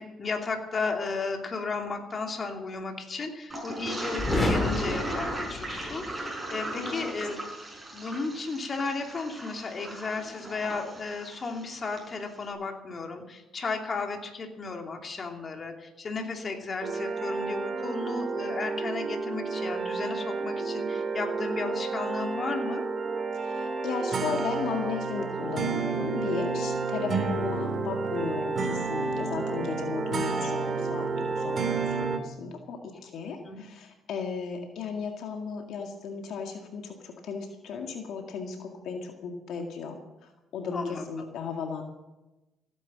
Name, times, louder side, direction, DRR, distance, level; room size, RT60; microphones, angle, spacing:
voice 1, 0.0-7.4 7.9-22.8 30.3-30.5 32.9-33.0 33.4-33.6 40.7-41.1, left 4 dB, 40° left, 3 dB, 2.7 m, -34 dB
Toilet flush, 3.5-12.1, right 1 dB, 15° right, 6.0 m, -37 dB
sound 1, 4.2-6.2, left 2 dB, 20° left, 3.7 m, -29 dB
voice 2, 6.8-7.1 23.4-31.1 31.4-40.0 40.5-41.8, left 5 dB, 75° left, 3 dB, 2.0 m, -35 dB
sound 2, 16.8-32.2, right 4 dB, 45° right, 2.3 m, -30 dB
16.0 x 9.8 x 7.4 m, 1.0 s
cardioid pair, 85°, 0 cm